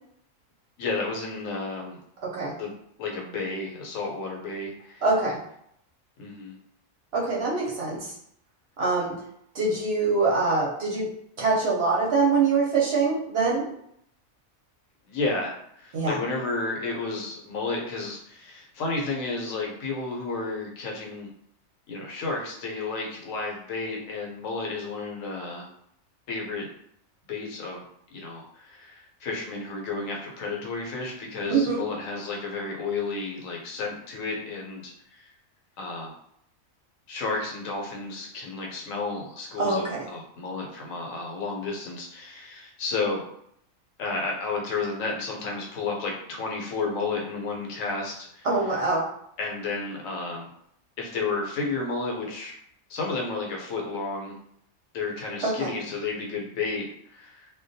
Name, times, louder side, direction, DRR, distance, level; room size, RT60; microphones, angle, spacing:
voice 1, 0.8-2.0 2.6-2.7 3.0-5.0 6.2-6.5 15.1-21.3 21.9-25.7 26.3-26.7 27.3-27.8 28.1-35.3 35.8-36.1 37.1-43.2 44.0-48.5 49.4-50.5 51.0-52.6 52.9-54.4 54.9-57.5, left 3 dB, 75° left, -1 dB, 1.0 m, -32 dB
voice 2, 2.2-2.5 5.0-5.4 7.1-8.1 8.8-9.1 9.5-11.1 11.4-13.6 15.9-16.2 31.5-31.8 39.6-40.0 48.4-49.0 55.4-55.7, right 3 dB, 60° right, -4 dB, 0.8 m, -24 dB
2.2 x 2.2 x 2.6 m, 0.71 s
omnidirectional pair, 1.4 m